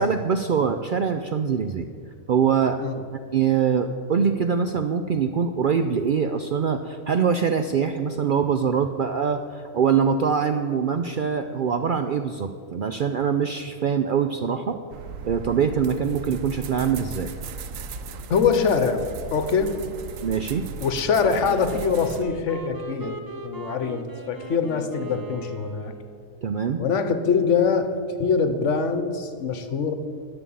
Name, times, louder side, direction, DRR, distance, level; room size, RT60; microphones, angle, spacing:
voice 1, 0.0-1.9 2.3-2.8 3.3-14.8 15.2-17.3 20.2-20.6 26.4-26.8, right 6 dB, 60° right, 7 dB, 0.5 m, -23 dB
sound 1, 14.9-22.2, right 6 dB, 80° right, 1.1 m, -37 dB
voice 2, 18.3-19.7 20.8-25.9 26.8-29.9, left 5 dB, 65° left, 9 dB, 1.2 m, -23 dB
Wind instrument woodwind instrument, 21.1-26.3, right 2 dB, 20° right, 0.6 m, -39 dB
11.0 x 6.9 x 8.5 m, 2.1 s
omnidirectional pair, 1.4 m